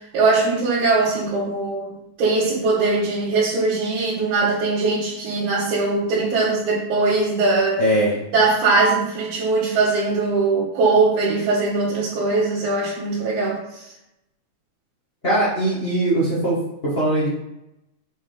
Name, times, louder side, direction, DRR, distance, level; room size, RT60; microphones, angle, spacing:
voice 1, 0.1-7.8 8.3-13.9, right 3 dB, 80° right, -11 dB, 3.9 m, -21 dB
voice 2, 7.8-8.1 15.2-16.6 16.9-17.3, right 1 dB, 70° left, -8 dB, 0.5 m, -20 dB
8.3 x 4.4 x 4.0 m, 0.86 s
omnidirectional pair, 4.3 m